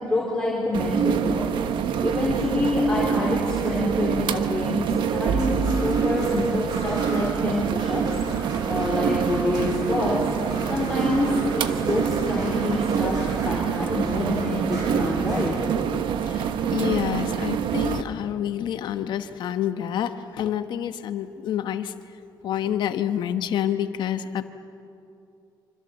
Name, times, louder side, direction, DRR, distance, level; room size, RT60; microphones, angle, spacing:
voice 1, 0.0-1.7 2.0-8.0 8.7-10.2 10.7-15.5, left 1 dB, 10° left, -6 dB, 3.8 m, -26 dB
sound 1, 0.7-18.0, right 7 dB, 90° right, 1.1 m, -26 dB
sound 2, 5.2-17.5 19.2-19.3, right 1 dB, 55° right, 7.1 m, -38 dB
voice 2, 15.9-21.9 22.4-24.5, left 10 dB, 70° left, 10 dB, 1.1 m, -28 dB
26.5 x 26.0 x 7.3 m, 2.7 s
cardioid pair, 170°, 8 cm